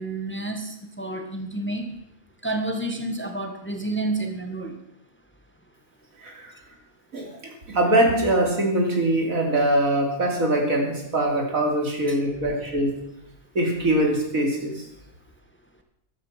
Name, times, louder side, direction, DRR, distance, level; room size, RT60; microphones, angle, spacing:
voice 1, 0.0-1.9 2.4-4.7 12.1-12.2, right 2 dB, 10° left, 5 dB, 1.5 m, -29 dB
voice 2, 7.7-12.9 13.5-14.7, right 1 dB, 85° right, 1 dB, 3.5 m, -22 dB
15.0 x 11.5 x 5.8 m, 0.81 s
omnidirectional pair, 1.4 m